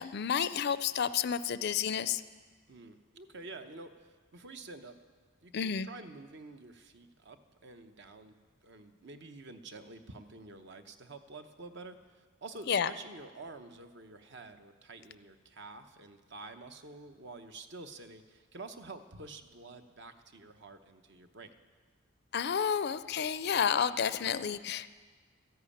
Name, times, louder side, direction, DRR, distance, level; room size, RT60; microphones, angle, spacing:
voice 1, 0.0-2.2 5.5-5.9 12.7-12.9 22.3-25.0, left 7 dB, 50° left, 14 dB, 0.4 m, -30 dB
voice 2, 2.7-5.0 5.4-8.4 8.6-21.5, right 3 dB, 55° right, 7 dB, 0.9 m, -49 dB
13.5 x 10.5 x 8.6 m, 1.5 s
head